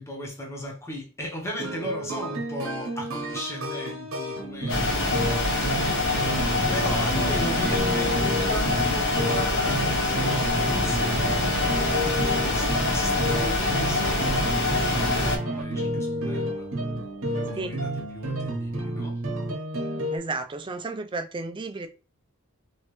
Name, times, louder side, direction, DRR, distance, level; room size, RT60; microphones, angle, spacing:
voice 1, 0.0-6.2 6.7-11.4 11.9-16.7 17.3-19.2, left 1 dB, 15° left, 0.9 m, -36 dB
sound 1, 1.5-20.2, right 1 dB, 70° right, 0.9 m, -31 dB
sound 2, 4.7-15.4, left 3 dB, 60° left, 0.8 m, -25 dB
sound 3, 5.9-15.6, right 5 dB, 45° right, 0.7 m, -38 dB
voice 2, 20.1-21.9, right 3 dB, 25° right, 0.3 m, -32 dB
3.1 x 2.9 x 3.0 m
head